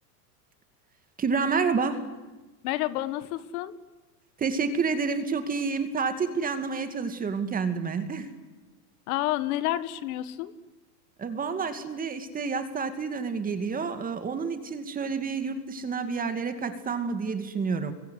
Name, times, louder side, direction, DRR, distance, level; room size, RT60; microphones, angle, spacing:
voice 1, 1.2-2.0 4.4-8.3 11.2-17.9, right 5 dB, 15° right, 9 dB, 2.3 m, -29 dB
voice 2, 2.6-3.7 9.1-10.5, left 14 dB, 60° left, 14 dB, 1.8 m, -29 dB
30.0 x 23.0 x 8.3 m, 1.1 s
supercardioid pair, 150°, 49 cm